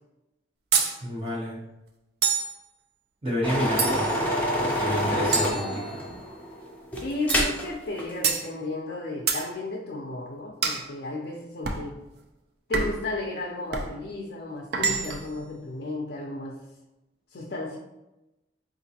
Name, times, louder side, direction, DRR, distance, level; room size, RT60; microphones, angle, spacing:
sound 1, 0.7-1.0 2.2-2.6 3.8-4.2 5.3-6.2 7.3-7.6 8.2-8.5 9.3-9.5 10.6-10.9 11.6-11.9 12.7-13.1 13.7-13.9 14.7-15.3, right 5 dB, 60° right, 0.4 m, -27 dB
voice 1, 1.0-1.6 3.2-4.1 4.6-6.0, equal, 30° right, -4 dB, 0.9 m, -29 dB
sound 2, 3.4-7.7 8.0-8.1, equal, 10° left, 0.5 m, -27 dB
voice 2, 7.0-12.0 12.7-16.6 17.3-17.8, left 2 dB, 60° left, -1 dB, 0.4 m, -33 dB
3.8 x 2.5 x 2.8 m, 0.96 s
head